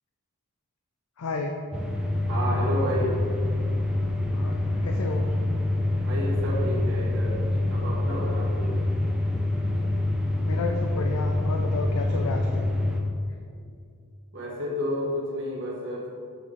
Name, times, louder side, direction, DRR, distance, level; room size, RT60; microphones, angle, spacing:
voice 1, 1.2-1.5 4.3-5.2 10.4-12.7, left 3 dB, 80° left, 3 dB, 0.5 m, -32 dB
sound 1, 1.7-13.0, left 2 dB, 5° right, 0.6 m, -26 dB
voice 2, 2.3-3.2 6.1-8.8 14.3-16.1, equal, 55° right, -4 dB, 1.6 m, -31 dB
7.8 x 4.9 x 4.1 m, 2.3 s
head